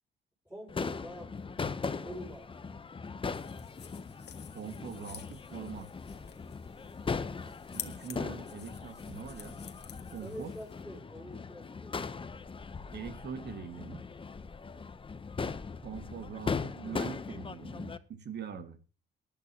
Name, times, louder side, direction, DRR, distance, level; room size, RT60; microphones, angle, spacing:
voice 1, 0.5-1.6 2.0-2.5 10.2-12.4 14.6-15.0, equal, 5° right, -6 dB, 5.4 m, -47 dB
Crowd / Fireworks, 0.7-18.0, left 5 dB, 25° left, 0.8 m, -39 dB
sound 1, 3.3-10.8, left 9 dB, 60° left, 1.5 m, -50 dB
voice 2, 4.5-5.9 7.7-9.6 10.1-10.5 12.9-14.0 15.8-18.8, right 7 dB, 60° right, 9 dB, 2.0 m, -43 dB
18.5 x 11.0 x 2.9 m, 0.35 s
cardioid pair, 90°, 20 cm